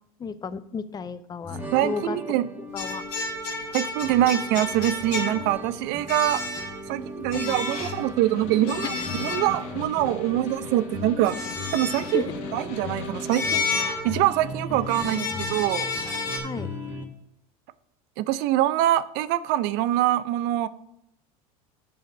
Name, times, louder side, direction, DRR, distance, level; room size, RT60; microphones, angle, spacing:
voice 1, 0.2-2.2 2.7-3.0 7.3-7.6 8.8-9.1 12.1-12.3 14.7-15.4 16.4-16.7, left 6 dB, 20° left, 14 dB, 0.5 m, -34 dB
sound 1, 1.4-17.1, left 1 dB, 10° right, 1.3 m, -38 dB
voice 2, 1.7-2.5 3.7-6.4 6.9-11.4 11.7-12.3 12.5-15.9 18.2-20.7, right 14 dB, 60° right, 16 dB, 0.5 m, -24 dB
sound 2, 2.8-5.7 6.1-6.9 7.3-8.0 8.7-9.9 11.2-12.3 13.3-14.4 14.9-16.4, left 4 dB, 90° left, 2.3 m, -31 dB
Snare drum, 7.9-14.0, left 6 dB, 65° left, 1.3 m, -40 dB
7.8 x 6.5 x 5.1 m, 0.79 s
supercardioid pair, 95°, 19 cm